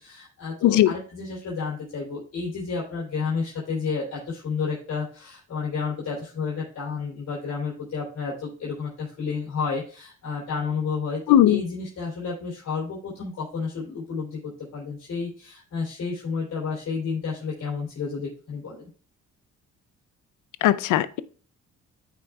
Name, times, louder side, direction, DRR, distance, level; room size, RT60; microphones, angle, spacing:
voice 1, 0.0-11.2 11.5-18.9, left 5 dB, 60° left, -6 dB, 3.3 m, -31 dB
voice 2, 11.3-11.6 20.6-21.2, left 12 dB, 80° left, 16 dB, 0.5 m, -18 dB
14.0 x 4.8 x 2.3 m, 0.40 s
cardioid pair, 90°, 30 cm